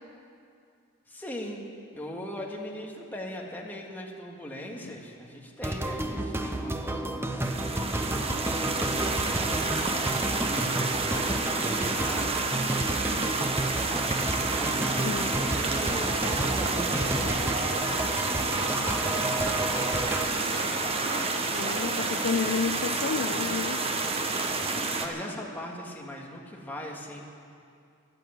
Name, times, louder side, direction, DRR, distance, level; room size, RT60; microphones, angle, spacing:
voice 1, 1.1-1.7 1.9-8.3 10.0-12.4 13.2-17.0 18.0-21.2 25.0-27.2, left 1 dB, 10° left, -1 dB, 1.8 m, -41 dB
sound 1, 5.6-20.3, right 1 dB, 10° right, 0.7 m, -31 dB
sound 2, 7.4-25.1, right 3 dB, 30° right, 1.1 m, -29 dB
voice 2, 15.0-15.4 21.5-23.8, left 5 dB, 50° left, 9 dB, 0.4 m, -31 dB
Domestic sounds home sounds, 15.4-22.2, right 2 dB, 45° right, 1.8 m, -38 dB
13.0 x 11.5 x 9.2 m, 2.4 s
head